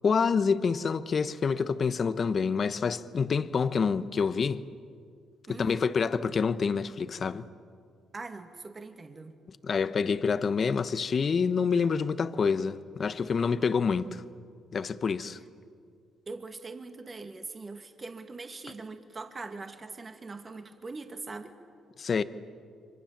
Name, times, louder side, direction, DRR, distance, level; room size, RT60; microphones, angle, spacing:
voice 1, 0.0-4.6 5.5-7.4 9.5-14.2 14.7-15.4 22.0-22.2, left 5 dB, 45° left, 1.0 m, -27 dB
voice 2, 5.5-5.8 8.1-9.4 16.3-21.6, right 3 dB, 30° right, 2.1 m, -42 dB
29.5 x 25.0 x 7.4 m
cardioid pair, 90°, 0 cm